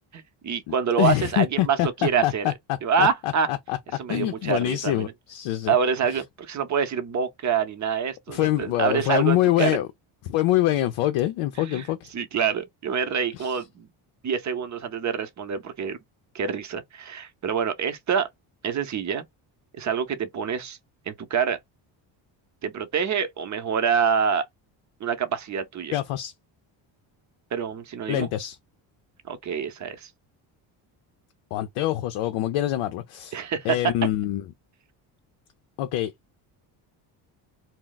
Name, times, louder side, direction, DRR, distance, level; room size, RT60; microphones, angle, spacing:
voice 1, 0.1-2.5 2.8-3.5 4.0-5.1 5.7-9.8 11.6-11.9 12.1-13.9 14.2-16.0 16.3-18.3 18.6-19.3 19.8-20.8 21.1-21.6 22.6-24.4 25.0-25.9 27.5-28.3 29.3-30.1 33.3-33.8, right 7 dB, 35° right, 0.7 m, -26 dB
voice 2, 0.7-3.8 4.1-5.8 8.3-9.9 10.3-12.0 13.3-13.6 25.9-26.3 28.1-28.6 31.5-33.4 33.7-34.4 35.8-36.1, left 14 dB, 75° left, 0.5 m, -25 dB
2.2 x 2.1 x 3.8 m
cardioid pair, 85°, 50 cm